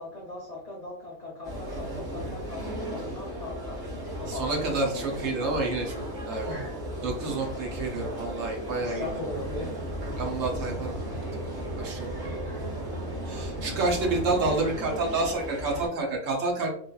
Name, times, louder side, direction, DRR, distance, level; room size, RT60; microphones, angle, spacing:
voice 1, 0.0-2.6 2.9-5.2 6.4-6.7 8.8-9.7, left 2 dB, 65° left, -3 dB, 0.4 m, -39 dB
sound 1, 1.4-15.9, equal, 30° right, 1.2 m, -36 dB
voice 2, 4.3-6.5 7.0-9.1 10.2-11.0 11.8-12.1 13.3-16.7, right 3 dB, 65° right, 0 dB, 1.0 m, -29 dB
sound 2, 9.2-14.5, right 2 dB, 50° right, 0.7 m, -38 dB
3.2 x 2.2 x 2.2 m, 0.65 s
omnidirectional pair, 1.5 m